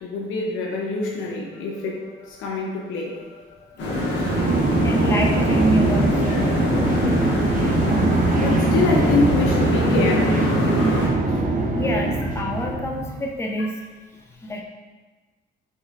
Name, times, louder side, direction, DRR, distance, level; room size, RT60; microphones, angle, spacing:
voice 1, 0.0-4.6 6.3-6.4 7.2-10.8, left 3 dB, 90° left, -1 dB, 0.8 m, -27 dB
sound 1, 3.8-11.1, left 1 dB, 70° left, 1.2 m, -24 dB
sound 2, 4.2-13.2, right 2 dB, 45° right, 0.5 m, -22 dB
voice 2, 4.8-6.5 11.7-13.7 14.4-14.6, equal, 15° left, 0 dB, 0.6 m, -26 dB
4.1 x 3.7 x 2.4 m, 1.3 s
cardioid pair, 90°, 20 cm